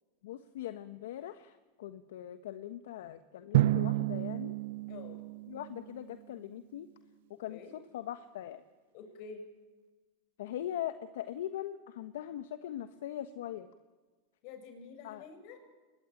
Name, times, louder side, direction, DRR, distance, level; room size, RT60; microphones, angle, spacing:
voice 1, 0.2-4.5 5.5-6.9 7.4-8.6 10.4-13.7 15.0-15.3, left 11 dB, 75° left, 10 dB, 1.3 m, -41 dB
Drum, 3.5-6.3, right 15 dB, 75° right, 0.7 m, -31 dB
voice 2, 4.9-5.2 7.5-7.7 8.9-9.4 14.4-15.6, left 5 dB, 55° left, 7 dB, 6.8 m, -48 dB
23.5 x 21.0 x 9.1 m, 1.3 s
hypercardioid pair, 110°, 0 cm